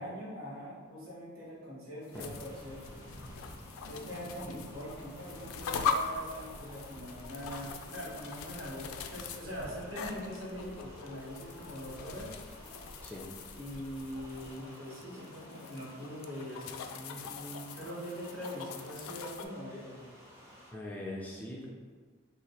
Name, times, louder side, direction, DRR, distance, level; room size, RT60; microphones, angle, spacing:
voice 1, 0.0-2.8 3.9-12.4 13.5-20.0, equal, 70° right, -6 dB, 1.3 m, -43 dB
sound 1, 2.0-19.5, left 5 dB, 85° left, 0.3 m, -42 dB
sound 2, 2.1-20.7, equal, 15° right, 0.7 m, -53 dB
sound 3, 2.2-14.5, equal, 45° right, 0.9 m, -53 dB
voice 2, 20.7-21.7, left 1 dB, 5° left, -5 dB, 0.4 m, -41 dB
2.9 x 2.5 x 4.2 m, 1.5 s
head